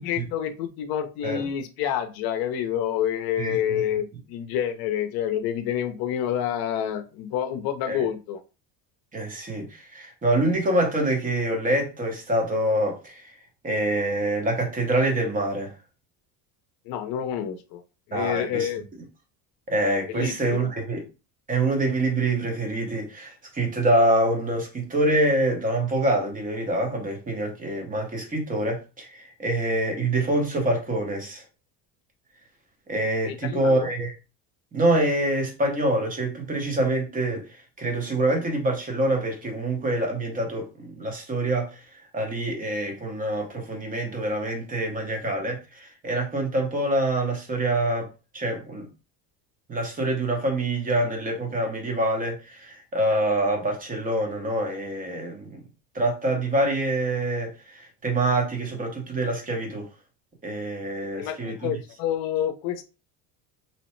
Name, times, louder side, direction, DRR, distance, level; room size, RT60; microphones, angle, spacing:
voice 1, 0.0-8.4 16.9-17.8 18.1-18.8 20.1-20.7 33.2-33.9 61.2-62.8, left 10 dB, 60° left, 0.6 m, -28 dB
voice 2, 9.1-13.3 13.6-15.7 18.1-18.7 19.7-21.0 21.5-31.4 32.9-34.1 34.7-37.5 37.8-41.8 42.1-48.1 48.3-48.9 49.7-55.6 55.9-59.9 60.4-61.7, right 1 dB, 20° right, 0.8 m, -25 dB
2.8 x 2.0 x 3.0 m
cardioid pair, 130°, 41 cm